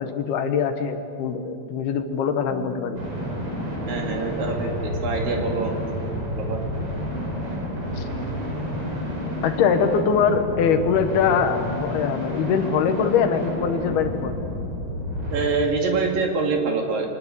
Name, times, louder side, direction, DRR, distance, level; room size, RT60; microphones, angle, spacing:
voice 1, 0.0-3.0 8.0-8.1 9.4-14.4, left 7 dB, 70° left, 7 dB, 2.9 m, -23 dB
Bass guitar, 2.5-8.7, right 2 dB, ahead, 0.4 m, -47 dB
sound 1, 2.9-15.4, equal, 35° right, 5.3 m, -30 dB
voice 2, 3.9-6.0 6.4-6.6 15.3-17.1, right 4 dB, 60° right, 2 dB, 3.8 m, -25 dB
25.0 x 19.5 x 8.3 m, 2.4 s
omnidirectional pair, 4.9 m